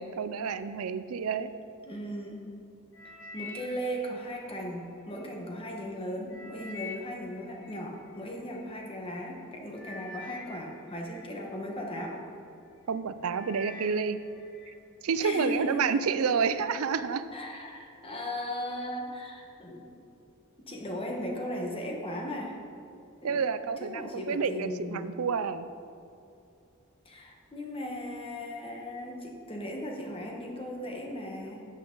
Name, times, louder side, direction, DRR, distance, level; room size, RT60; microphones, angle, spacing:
voice 1, 0.0-1.5 12.9-14.2 15.0-17.2 23.2-25.7, right 5 dB, 80° right, 13 dB, 0.5 m, -29 dB
voice 2, 1.8-2.5 3.3-12.2 15.2-16.0 17.3-19.8 20.7-22.6 23.2-23.4 23.8-25.2 27.0-31.7, left 1 dB, 25° left, 0 dB, 1.3 m, -37 dB
sound 1, 2.9-5.3 5.8-8.6 9.3-9.5 9.7-12.1 12.6-12.9 13.2-14.7 15.1-15.6 16.2-16.3, left 2 dB, 65° left, 1.7 m, -47 dB
11.5 x 8.3 x 3.9 m, 2.5 s
head